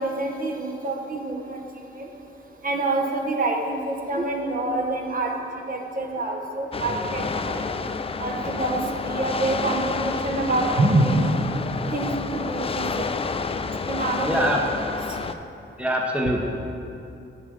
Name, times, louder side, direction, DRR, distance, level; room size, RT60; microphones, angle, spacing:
voice 1, 0.0-1.6 1.9-2.1 2.6-5.3 5.7-7.7 8.2-11.4 11.9-13.2 13.9-14.5 15.1-15.2, right 2 dB, 40° right, 0 dB, 1.0 m, -26 dB
sound 1, 6.7-15.3, left 4 dB, 25° left, 0.3 m, -29 dB
voice 2, 14.3-14.6 15.8-16.5, equal, 5° right, 0 dB, 0.8 m, -23 dB
7.4 x 6.2 x 6.4 m, 2.7 s
wide cardioid pair, 100°, 21 cm